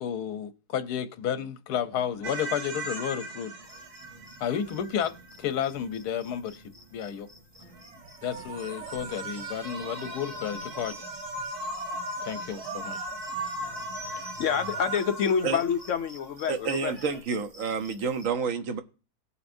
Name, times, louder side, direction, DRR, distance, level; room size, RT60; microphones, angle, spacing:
voice 1, 0.0-3.5 4.4-5.1 5.4-7.3 8.2-10.9 12.2-13.1, left 9 dB, 85° left, 1.3 m, -32 dB
sound 1, 1.8-14.8, right 1 dB, 25° left, 3.1 m, -55 dB
sound 2, 2.2-5.5 7.7-17.2, right 1 dB, 75° right, 1.8 m, -38 dB
sound 3, 3.6-18.3, left 1 dB, 40° right, 3.3 m, -54 dB
voice 2, 14.1-16.9, left 7 dB, 65° left, 0.8 m, -28 dB
voice 3, 16.5-18.8, right 5 dB, 60° right, 1.2 m, -29 dB
18.5 x 7.0 x 2.6 m
omnidirectional pair, 1.7 m